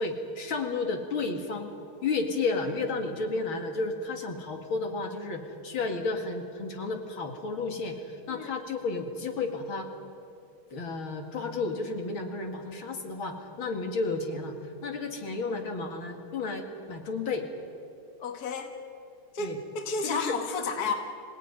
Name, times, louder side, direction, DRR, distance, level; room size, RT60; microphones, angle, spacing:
voice 1, 0.0-1.7 2.0-8.0 8.3-9.9 10.7-14.5 14.8-17.5 19.4-19.6 20.0-20.3, left 3 dB, 70° left, 4 dB, 2.9 m, -32 dB
voice 2, 18.2-18.7 19.3-20.9, left 4 dB, 45° left, 4 dB, 2.2 m, -32 dB
26.0 x 17.5 x 9.5 m, 2.4 s
omnidirectional pair, 2.3 m